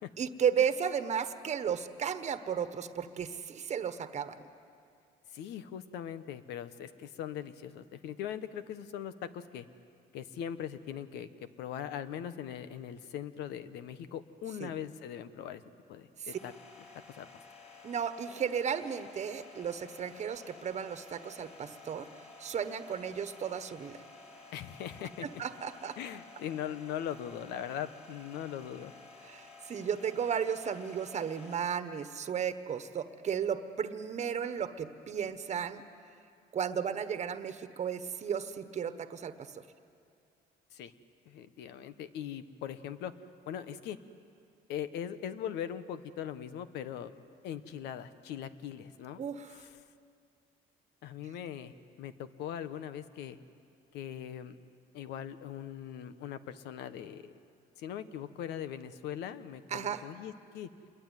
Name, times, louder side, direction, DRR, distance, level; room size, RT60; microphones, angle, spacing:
voice 1, 0.2-4.4 14.6-14.7 17.8-22.1 22.4-24.0 25.4-26.0 29.3-35.8 36.5-39.5 49.2-49.6 59.7-60.0, right 7 dB, 40° right, 10 dB, 1.4 m, -34 dB
voice 2, 5.3-9.7 10.1-11.3 11.6-15.6 15.9-16.5 17.1-17.3 24.5-25.3 26.0-28.9 40.7-40.9 41.2-43.1 43.5-44.0 44.7-47.1 47.4-49.2 49.5-49.7 51.0-53.4 53.9-54.6 54.9-57.3 57.8-60.7, left 9 dB, 85° left, 12 dB, 1.2 m, -40 dB
sound 1, 16.3-31.6, left 3 dB, 40° left, 6.1 m, -53 dB
28.0 x 22.0 x 9.3 m, 2.4 s
cardioid pair, 110°, 17 cm